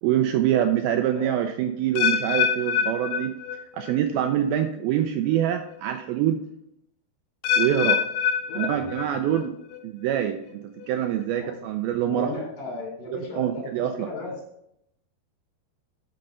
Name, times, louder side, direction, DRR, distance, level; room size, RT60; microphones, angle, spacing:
voice 1, 0.0-3.3 3.7-6.4 7.6-8.0 8.6-9.5 9.8-12.3 13.1-14.1, right 11 dB, 90° right, 7 dB, 2.2 m, -25 dB
sound 1, 2.0-4.0 4.2-4.7 5.3-5.4 7.4-9.4 9.7-10.2 10.8-10.9, left 7 dB, 80° left, 2.4 m, -26 dB
voice 2, 8.5-9.4 11.4-11.5 12.1-14.3, left 3 dB, 55° left, 0 dB, 4.3 m, -36 dB
7.8 x 6.4 x 5.4 m, 0.77 s
omnidirectional pair, 4.9 m